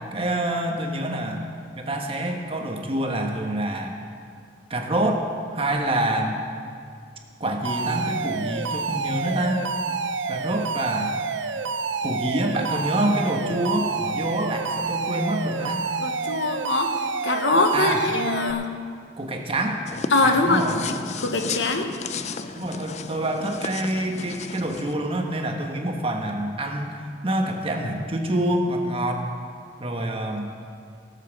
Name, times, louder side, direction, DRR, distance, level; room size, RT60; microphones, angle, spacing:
voice 1, 0.1-1.4 1.8-4.0 4.7-6.4 7.4-9.7 10.3-11.2 12.0-15.9 17.7-18.0 19.2-19.8 20.2-20.8 22.5-29.2 29.8-30.5, right 1 dB, 30° right, 2 dB, 1.2 m, -26 dB
Alarm, 7.6-18.5, right 4 dB, 85° right, 0.6 m, -28 dB
voice 2, 16.0-16.9 17.2-18.7 20.1-20.6 21.2-21.9, left 3 dB, 85° left, 5 dB, 1.1 m, -22 dB
sound 1, 19.9-24.9, left 5 dB, 40° left, 0.4 m, -34 dB
17.0 x 7.4 x 6.0 m, 2.2 s
head